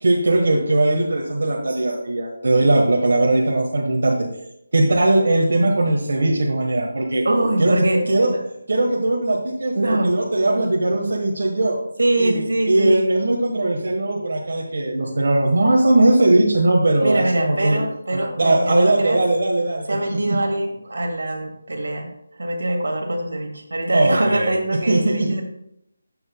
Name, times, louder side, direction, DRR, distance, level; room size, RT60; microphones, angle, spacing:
voice 1, 0.0-4.2 4.7-7.2 7.6-8.3 8.7-11.8 12.2-17.8 18.1-20.4 23.9-24.6 24.9-25.3, right 2 dB, 55° right, -1 dB, 1.3 m, -19 dB
voice 2, 7.2-8.4 9.7-10.1 12.0-13.2 17.0-19.2 19.9-25.4, right 1 dB, 75° right, 3 dB, 2.0 m, -23 dB
11.0 x 7.8 x 2.2 m, 0.76 s
figure-of-eight pair, 180°, 0 cm